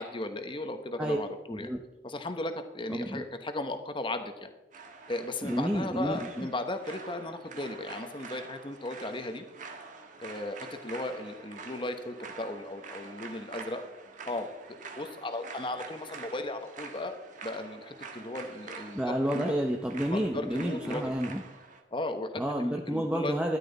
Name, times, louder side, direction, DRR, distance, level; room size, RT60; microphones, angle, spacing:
voice 1, 0.0-1.7 2.0-4.5 5.1-9.4 10.2-13.8 14.3-14.5 15.0-17.2 17.4-19.5 20.1-21.1 21.9-23.3, left 2 dB, 25° left, 7 dB, 1.0 m, -36 dB
voice 2, 1.5-1.8 2.9-3.3 5.4-6.5 18.9-21.4 22.4-23.6, equal, 5° right, 1 dB, 0.7 m, -30 dB
sound 1, 4.7-21.8, right 4 dB, 40° right, 1.3 m, -46 dB
13.5 x 11.0 x 4.0 m, 0.99 s
head